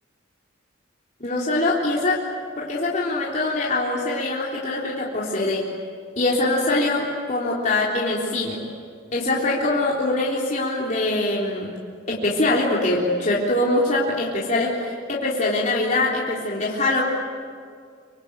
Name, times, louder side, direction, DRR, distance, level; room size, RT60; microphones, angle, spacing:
voice 1, 1.2-2.2 2.6-5.7 6.2-8.6 9.1-11.7 12.1-14.8 15.1-17.0, left 2 dB, 40° left, -5 dB, 3.8 m, -23 dB
26.5 x 25.0 x 8.9 m, 2.1 s
head